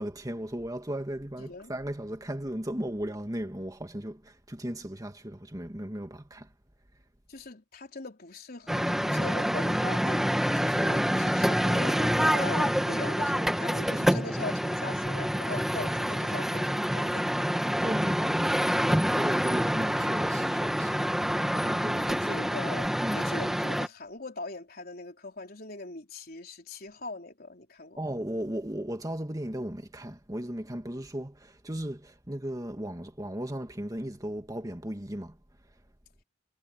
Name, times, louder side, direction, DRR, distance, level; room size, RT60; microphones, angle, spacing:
voice 1, 0.0-6.5 10.8-11.0 17.8-18.7 19.1-21.0 21.5-22.4 23.0-23.3 28.0-35.4, right 1 dB, 20° right, 2.1 m, -36 dB
voice 2, 1.4-1.7 7.3-17.3 22.1-28.0, left 2 dB, 55° left, 3.9 m, -41 dB
sound 1, 8.7-23.9, equal, ahead, 1.9 m, -27 dB
head